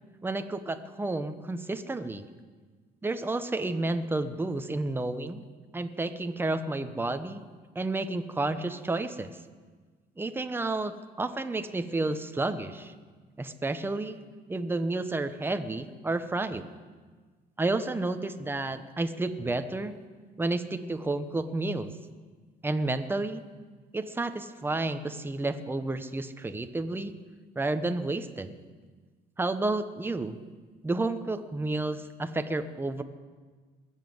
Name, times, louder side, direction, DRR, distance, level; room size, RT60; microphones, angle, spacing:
voice 1, 0.2-2.3 3.0-5.4 5.7-7.4 7.7-9.3 10.2-12.9 13.4-14.2 14.5-16.7 17.6-19.9 20.4-21.9 22.6-23.4 23.9-27.1 27.6-28.6 29.4-30.4 30.8-33.0, right 2 dB, 15° right, 9 dB, 0.9 m, -31 dB
21.0 x 7.5 x 7.9 m, 1.4 s
cardioid pair, 110°, 17 cm